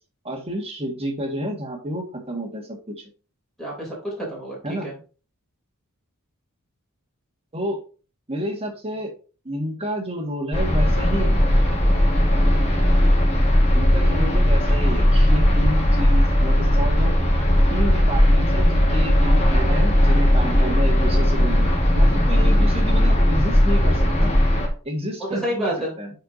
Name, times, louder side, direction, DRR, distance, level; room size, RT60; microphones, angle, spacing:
voice 1, 0.2-3.1 4.6-4.9 7.5-7.8 8.3-9.1 9.4-11.4 13.7-17.2 17.7-21.7 21.9-24.3 24.8-26.1, equal, 25° right, 2 dB, 1.7 m, -29 dB
voice 2, 3.6-4.9 17.9-18.2 25.3-25.9, equal, ahead, -5 dB, 3.2 m, -29 dB
sound 1, 10.5-24.7, equal, 30° left, 1.7 m, -17 dB
10.0 x 4.6 x 2.7 m, 0.37 s
head